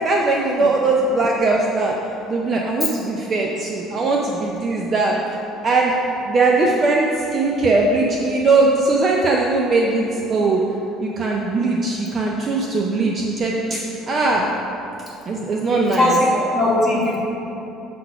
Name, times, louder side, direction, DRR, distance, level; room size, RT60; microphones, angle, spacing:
voice 1, 0.0-1.9 2.3-5.2 5.6-5.9 6.3-10.6 11.0-14.5 15.3-16.2, right 3 dB, 25° right, -1 dB, 0.4 m, -20 dB
voice 2, 15.6-17.2, left 1 dB, 10° left, -7 dB, 1.3 m, -19 dB
7.5 x 4.0 x 5.7 m, 3.0 s
cardioid pair, 180°, 0 cm